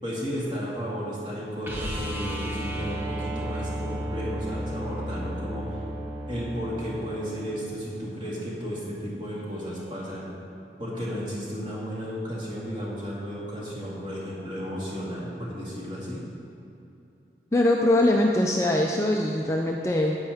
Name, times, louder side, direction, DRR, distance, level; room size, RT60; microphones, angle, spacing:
voice 1, 0.0-5.9 6.3-10.3 10.8-16.2, equal, 25° right, -6 dB, 2.0 m, -33 dB
sound 1, 1.6-7.6 10.1-10.2, equal, 10° right, 0.9 m, -33 dB
voice 2, 17.5-20.1, left 1 dB, 15° left, 0 dB, 0.4 m, -22 dB
9.8 x 8.9 x 3.5 m, 2.8 s
head